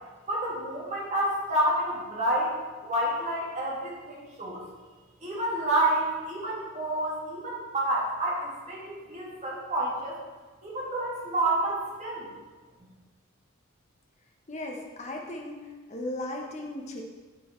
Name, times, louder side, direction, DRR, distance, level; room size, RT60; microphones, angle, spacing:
voice 1, 0.3-2.5 2.8-4.6 5.2-10.2 10.6-12.3, right 1 dB, 30° right, -5 dB, 2.1 m, -29 dB
voice 2, 14.5-15.6 15.9-17.0, left 1 dB, 30° left, 1 dB, 0.9 m, -36 dB
8.9 x 6.2 x 4.3 m, 1.3 s
head